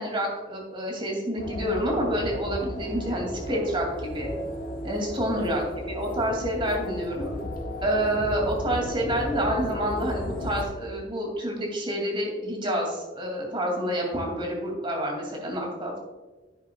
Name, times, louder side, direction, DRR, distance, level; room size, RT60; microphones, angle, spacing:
voice 1, 0.0-4.3 4.8-7.3 7.8-16.0, equal, 30° right, 0 dB, 2.5 m, -28 dB
sound 1, 1.4-10.6, left 1 dB, 55° left, 1.6 m, -34 dB
10.5 x 9.5 x 2.3 m, 1.2 s
head